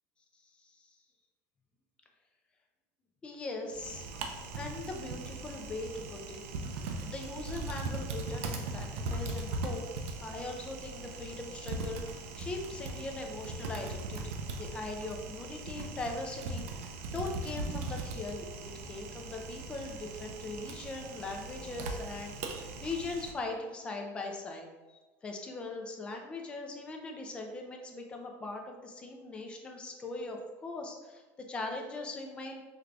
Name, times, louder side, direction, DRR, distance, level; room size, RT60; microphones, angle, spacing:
voice 1, 0.5-1.0 3.2-4.1 4.5-6.5 7.0-9.8 10.2-31.2 31.5-32.6, left 3 dB, 15° left, 2 dB, 0.4 m, -40 dB
Typing, 3.7-23.3, right 3 dB, 85° right, 0.5 m, -39 dB
4.5 x 2.3 x 2.4 m, 1.2 s
cardioid pair, 165°, 7 cm